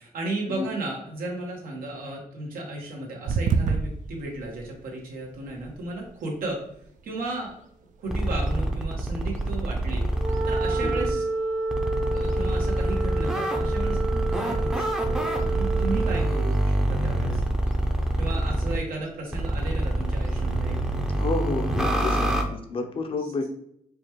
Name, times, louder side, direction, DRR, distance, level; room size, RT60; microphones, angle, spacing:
voice 1, 0.0-6.6 7.0-7.6 8.0-10.0 10.4-11.3 12.1-17.4 18.2-20.8 23.2-23.3, right 2 dB, 90° right, -1 dB, 1.3 m, -34 dB
sound 1, 3.3-21.1, right 5 dB, 65° right, 0.4 m, -37 dB
sound 2, 8.1-11.1 11.7-18.8 19.3-22.4, right 1 dB, 5° right, 0.5 m, -26 dB
Wind instrument woodwind instrument, 10.1-16.4, right 3 dB, 50° right, 0.8 m, -30 dB
voice 2, 21.2-23.5, left 3 dB, 40° left, 5 dB, 0.6 m, -30 dB
5.0 x 2.3 x 3.0 m, 0.72 s
cardioid pair, 125°, 14 cm